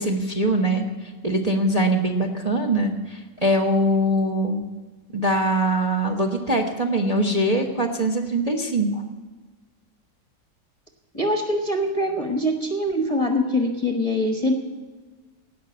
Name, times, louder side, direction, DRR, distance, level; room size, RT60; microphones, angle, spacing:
voice 1, 0.0-4.6 5.1-9.0, right 1 dB, 25° right, 3 dB, 1.0 m, -22 dB
voice 2, 11.1-14.5, left 1 dB, 25° left, 4 dB, 1.0 m, -23 dB
17.0 x 5.9 x 8.7 m, 1.3 s
omnidirectional pair, 1.9 m